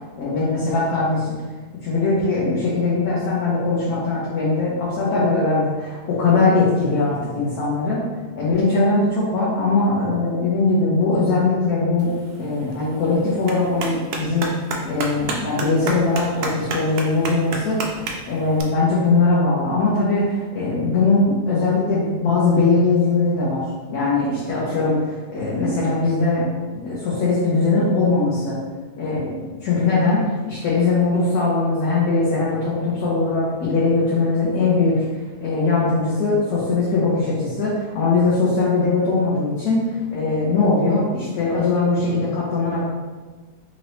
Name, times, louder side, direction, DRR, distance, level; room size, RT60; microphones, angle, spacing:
voice 1, 0.2-1.4 1.8-8.0 8.4-14.5 14.8-18.0 18.3-23.6 23.9-26.5 26.7-28.6 29.0-30.2 30.5-35.0 35.4-39.8 40.1-42.8, left 3 dB, 75° left, -7 dB, 1.4 m, -20 dB
Clapping, 12.0-18.6, right 3 dB, 75° right, 1.1 m, -32 dB
3.9 x 2.9 x 3.1 m, 1.3 s
omnidirectional pair, 1.7 m